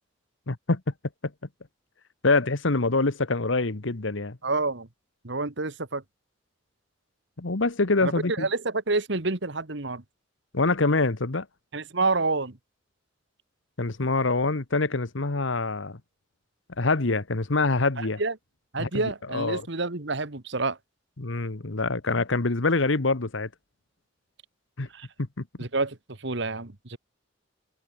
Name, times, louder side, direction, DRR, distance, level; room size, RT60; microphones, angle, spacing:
voice 1, 0.5-0.8 2.2-4.4 7.4-8.5 10.5-11.5 13.8-16.0 16.8-18.2 18.8-19.7 21.2-23.5 24.8-24.9 25.4-25.5, left 3 dB, 70° left, 1.3 m, -25 dB
voice 2, 4.4-4.9 5.2-6.0 8.0-8.1 8.4-10.0 11.7-12.5 18.0-18.3 18.7-20.8 24.9-25.1 25.6-26.0 26.2-27.0, right 3 dB, 60° right, 1.7 m, -28 dB
head